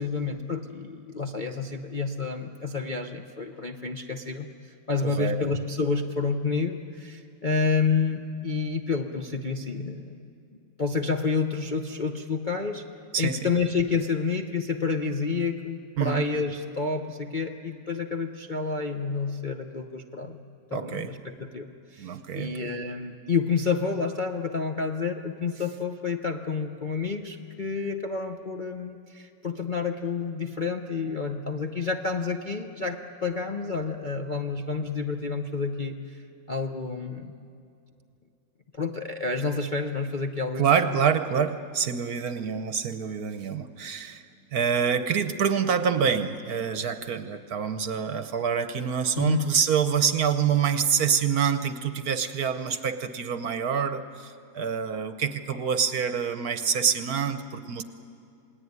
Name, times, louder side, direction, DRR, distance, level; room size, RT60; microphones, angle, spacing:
voice 1, 0.0-10.2 10.8-12.8 13.2-20.4 20.7-36.2 36.5-37.3 38.8-40.6 49.2-49.5, left 4 dB, 40° left, 2 dB, 0.7 m, -29 dB
voice 2, 5.0-5.5 13.1-13.4 16.0-16.3 20.7-21.1 22.0-22.7 40.6-44.2 44.5-57.8, right 7 dB, 60° right, 10 dB, 1.2 m, -26 dB
28.5 x 20.0 x 9.6 m, 2.5 s
omnidirectional pair, 2.1 m